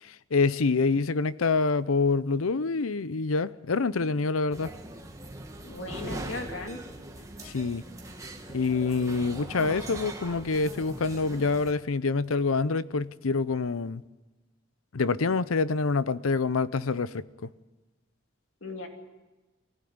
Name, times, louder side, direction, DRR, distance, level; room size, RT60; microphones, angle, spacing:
voice 1, 0.0-4.7 7.4-7.8 8.5-14.0 14.9-17.5, left 4 dB, 85° left, 0.7 m, -26 dB
sound 1, 4.5-11.7, right 1 dB, 15° right, 1.6 m, -41 dB
voice 2, 5.6-6.8 18.6-18.9, left 2 dB, 65° left, 2.8 m, -37 dB
23.0 x 17.0 x 9.6 m
head